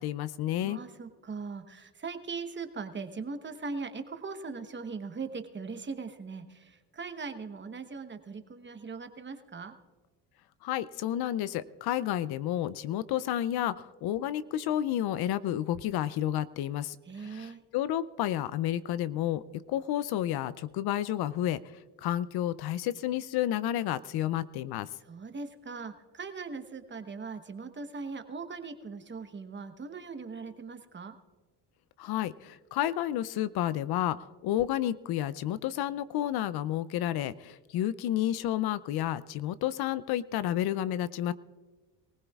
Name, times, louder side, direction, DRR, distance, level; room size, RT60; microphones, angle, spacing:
voice 1, 0.0-0.8 10.6-19.4 19.7-21.6 22.0-24.9 32.0-41.3, left 12 dB, 65° left, 16 dB, 0.6 m, -31 dB
voice 2, 0.6-9.7 17.1-17.6 25.1-31.1, right 4 dB, 25° right, 8 dB, 1.1 m, -40 dB
23.0 x 16.0 x 2.4 m, 1.3 s
cardioid pair, 95°, 41 cm